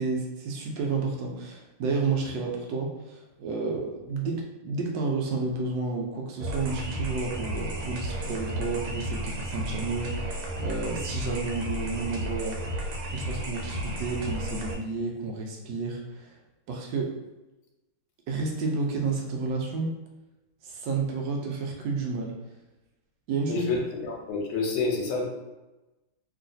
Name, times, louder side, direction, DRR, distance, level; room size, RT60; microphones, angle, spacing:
voice 1, 0.0-12.6 13.1-16.3 16.7-17.1 18.3-19.9 20.6-22.3 23.3-23.7, right 4 dB, 70° right, 0 dB, 1.1 m, -31 dB
sound 1, 6.4-14.7, right 1 dB, 85° right, 1.5 m, -33 dB
voice 2, 23.5-25.2, left 3 dB, 85° left, -1 dB, 1.6 m, -28 dB
3.1 x 2.8 x 2.6 m, 1.0 s
omnidirectional pair, 2.2 m